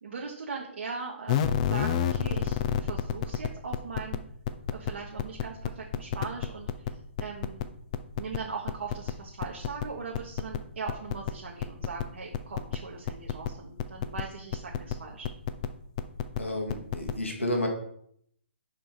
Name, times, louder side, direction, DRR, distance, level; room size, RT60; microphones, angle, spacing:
voice 1, 0.0-4.2 4.7-7.7 8.2-15.3, right 5 dB, 65° right, -2 dB, 1.2 m, -40 dB
sound 1, 1.3-4.2 4.4-4.9 5.2-6.9 7.2-7.6 7.9-8.4 8.7-9.1 9.4-9.9 10.1-10.6 10.9-11.3 11.6-12.0 12.3-12.8 13.1-13.5 13.8-14.2 14.5-15.0 15.2-15.7 16.0-16.4 16.7-17.1, left 9 dB, 35° left, 0.5 m, -29 dB
voice 2, 16.4-17.7, left 1 dB, 85° left, 0 dB, 2.1 m, -31 dB
5.5 x 5.0 x 4.7 m, 0.67 s
figure-of-eight pair, 135°, 7 cm